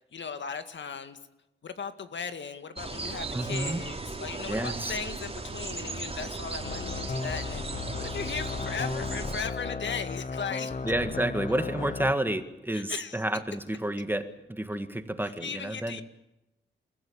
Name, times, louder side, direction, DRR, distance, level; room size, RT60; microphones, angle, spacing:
voice 1, 0.1-1.2 1.6-10.8 12.7-13.2 15.2-16.0, left 6 dB, 65° left, 9 dB, 2.0 m, -37 dB
sound 1, 2.7-9.4, right 3 dB, 30° right, 3.3 m, -37 dB
voice 2, 3.3-3.8 4.5-5.0 10.8-16.0, right 1 dB, 10° right, 9 dB, 1.9 m, -30 dB
sound 2, 6.6-12.1, left 4 dB, 40° left, 1.2 m, -35 dB
29.5 x 15.5 x 8.8 m, 0.91 s
wide cardioid pair, 105°, 20 cm